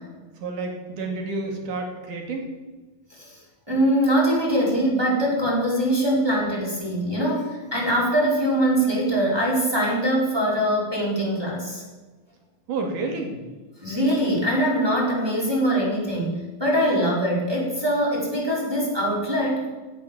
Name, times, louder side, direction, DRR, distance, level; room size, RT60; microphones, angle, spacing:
voice 1, 0.4-2.5 12.7-13.4, right 3 dB, 70° right, 3 dB, 4.0 m, -30 dB
voice 2, 3.7-11.8 13.8-19.7, right 1 dB, 5° right, -3 dB, 4.5 m, -23 dB
16.5 x 8.5 x 7.3 m, 1.3 s
omnidirectional pair, 3.8 m